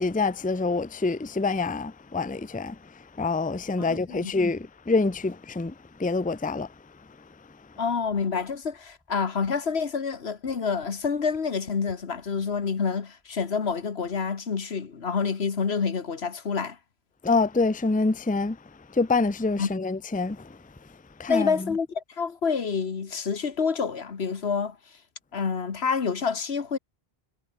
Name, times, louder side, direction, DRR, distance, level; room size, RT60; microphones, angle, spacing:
voice 1, 0.0-6.7 17.2-18.6 18.9-20.6 21.2-21.7, left 3 dB, 10° left, 0.6 m, -26 dB
voice 2, 3.8-4.3 7.8-16.8 19.6-19.7 21.3-24.8 25.3-26.8, left 5 dB, 75° left, 1.7 m, -28 dB
omnidirectional pair, 1.1 m